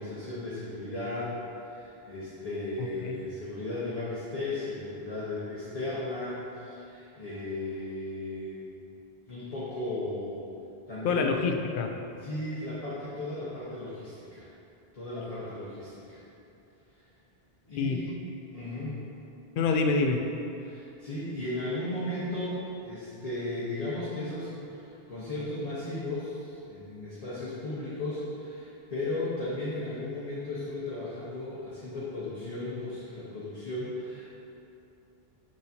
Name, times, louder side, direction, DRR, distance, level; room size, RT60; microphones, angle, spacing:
voice 1, 0.0-8.6 9.3-10.4 10.9-11.3 12.2-14.5 14.9-16.2 17.7-18.1 18.5-18.9 20.6-34.4, left 2 dB, 35° left, -11 dB, 1.1 m, -35 dB
voice 2, 2.8-3.2 11.0-11.9 17.8-18.1 19.6-20.2, left 4 dB, 60° left, 4 dB, 0.7 m, -27 dB
6.8 x 6.3 x 2.7 m, 2.8 s
omnidirectional pair, 1.1 m